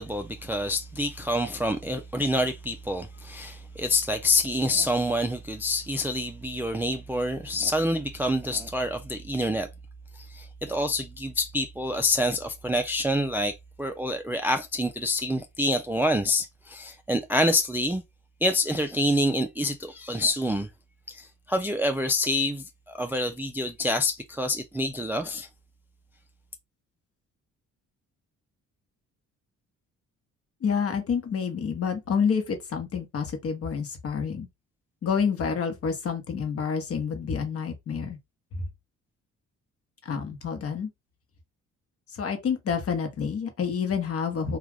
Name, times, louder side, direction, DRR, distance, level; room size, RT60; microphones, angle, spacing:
voice 1, 0.0-9.7 10.2-18.0 18.4-20.7 21.1-25.5, left 1 dB, 5° right, 0.3 m, -27 dB
voice 2, 30.6-34.5 35.0-38.2 40.0-40.9 42.1-44.6, left 6 dB, 50° left, 1.0 m, -28 dB
2.4 x 2.4 x 3.3 m
cardioid pair, 90°, 30 cm